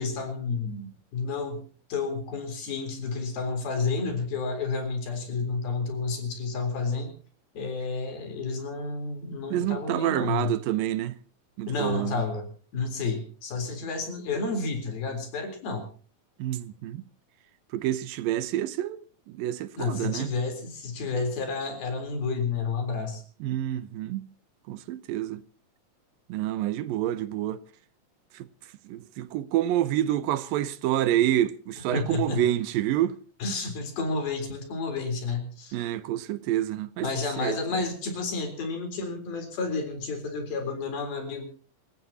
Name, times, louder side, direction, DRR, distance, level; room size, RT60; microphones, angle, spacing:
voice 1, 0.0-1.6 1.9-7.2 7.6-10.5 11.7-12.5 12.7-15.9 19.8-23.2 31.9-32.5 33.4-35.8 37.0-41.4, left 4 dB, 85° left, 5.7 m, -30 dB
voice 2, 9.5-11.2 11.6-12.2 16.4-17.0 17.7-19.0 19.3-20.3 23.4-24.3 24.7-25.4 26.3-27.6 28.3-28.5 28.9-33.2 35.7-37.1 37.4-37.6, right 13 dB, 80° right, 2.6 m, -28 dB
27.5 x 15.5 x 2.9 m
omnidirectional pair, 4.1 m